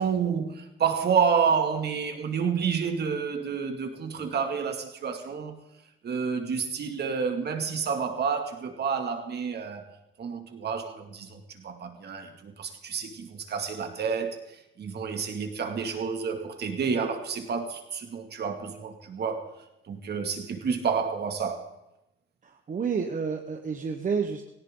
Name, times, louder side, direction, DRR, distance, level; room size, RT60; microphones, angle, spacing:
voice 1, 0.0-5.6 6.0-9.9 10.2-19.5 19.9-21.7, right 6 dB, 55° right, 2.2 m, -29 dB
voice 2, 22.4-24.5, right 6 dB, 40° right, 1.1 m, -30 dB
18.0 x 16.5 x 3.8 m
cardioid pair, 90°, 20 cm